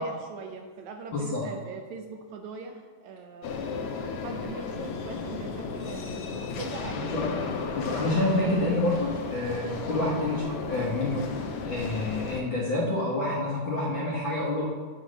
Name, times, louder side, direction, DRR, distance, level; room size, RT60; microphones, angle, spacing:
voice 1, 0.0-3.5 4.2-7.3, right 4 dB, 80° right, 4 dB, 1.8 m, -41 dB
voice 2, 1.1-1.5 7.1-7.2 7.7-11.3 11.7-14.7, left 2 dB, 60° left, -5 dB, 1.3 m, -28 dB
sound 1, 3.4-12.4, left 4 dB, 80° left, 1.3 m, -34 dB
10.5 x 4.0 x 6.3 m, 1.5 s
omnidirectional pair, 3.6 m